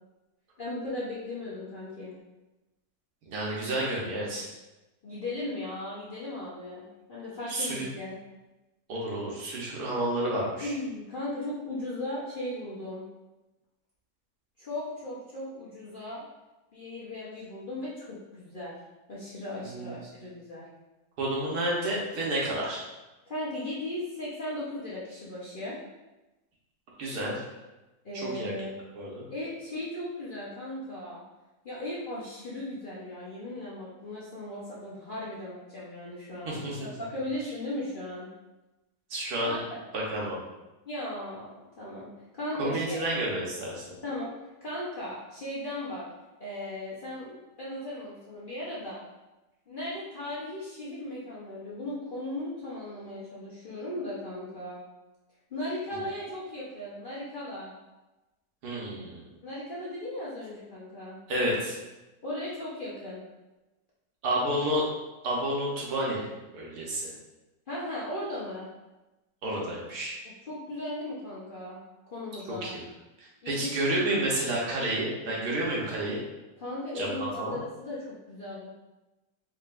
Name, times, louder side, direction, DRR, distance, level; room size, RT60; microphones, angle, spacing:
voice 1, 0.6-2.1 5.0-8.2 10.6-13.0 14.6-16.3 16.7-18.7 19.1-20.6 23.3-25.8 28.0-28.7 29.3-31.2 31.6-38.3 39.4-39.8 40.9-43.0 44.0-44.3 44.6-46.1 46.4-49.0 49.7-54.8 55.5-57.7 59.4-61.2 62.2-63.2 67.7-68.7 70.5-71.8 72.1-72.7 73.4-74.2 76.6-78.7, left 1 dB, 45° left, -8 dB, 0.7 m, -37 dB
voice 2, 3.3-4.5 7.5-7.9 8.9-10.7 19.7-19.9 21.2-22.8 27.0-27.4 28.1-28.5 28.9-29.2 36.5-36.9 39.1-39.6 39.9-40.4 42.6-43.9 58.6-59.2 61.3-61.8 64.2-64.8 65.2-66.3 66.5-67.1 69.4-70.2 72.5-72.8 73.2-76.2 76.9-77.6, right 1 dB, 75° right, -4 dB, 1.5 m, -30 dB
4.6 x 3.2 x 2.4 m, 1.1 s
omnidirectional pair, 1.7 m